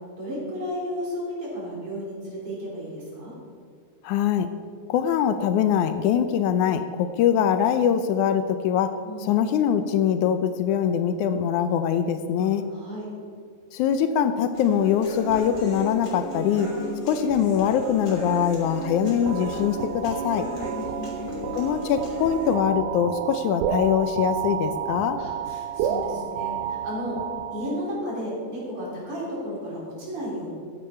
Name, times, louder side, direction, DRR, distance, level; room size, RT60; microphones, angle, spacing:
voice 1, 0.2-3.3 9.0-9.3 12.4-13.1 16.7-17.0 20.4-21.4 25.2-27.2 27.5-30.5, equal, 45° right, -6 dB, 4.5 m, -34 dB
voice 2, 4.0-4.5 4.9-12.6 13.7-16.7 17.1-20.5 21.6-25.2, left 8 dB, 80° left, 9 dB, 2.0 m, -23 dB
Human voice / Acoustic guitar, 14.5-22.5, equal, 30° left, 3.4 m, -35 dB
sound 1, 19.3-28.0, right 9 dB, 85° right, 2.2 m, -31 dB
15.0 x 9.8 x 4.3 m, 2.3 s
omnidirectional pair, 3.6 m